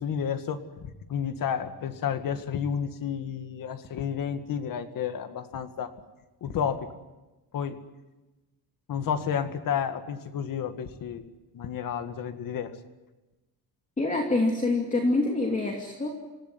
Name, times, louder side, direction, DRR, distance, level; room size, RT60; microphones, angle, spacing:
voice 1, 0.0-5.9 6.4-6.9 7.5-7.8 8.9-11.3 11.5-12.8, left 8 dB, 55° left, 8 dB, 2.1 m, -31 dB
voice 2, 14.0-16.2, left 2 dB, 20° left, 0 dB, 2.8 m, -26 dB
27.0 x 17.0 x 9.5 m, 1.1 s
cardioid pair, 150°, 39 cm